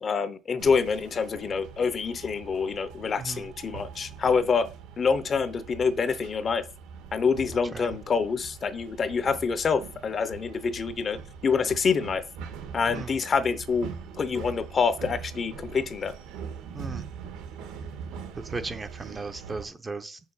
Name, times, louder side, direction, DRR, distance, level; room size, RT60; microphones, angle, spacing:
voice 1, 0.0-4.7 5.0-6.7 7.1-12.2 12.7-13.9 14.2-16.1, left 5 dB, 25° left, 0.6 m, -26 dB
sound 1, 0.6-19.7, right 6 dB, 85° right, 1.7 m, -42 dB
voice 2, 16.7-17.1 18.3-20.2, right 3 dB, 15° right, 0.6 m, -36 dB
7.3 x 6.5 x 5.5 m
cardioid pair, 175°, 0 cm